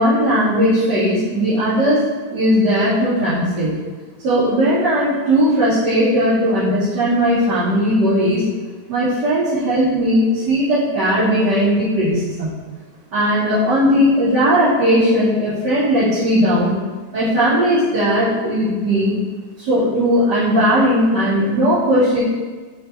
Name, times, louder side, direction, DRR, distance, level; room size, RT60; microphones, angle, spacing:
voice 1, 0.0-2.0 2.3-3.7 4.2-8.4 8.9-12.5 13.1-16.8 17.1-19.1 19.6-22.2, equal, 85° right, -14 dB, 3.0 m, -17 dB
6.8 x 5.1 x 3.6 m, 1.4 s
omnidirectional pair, 1.8 m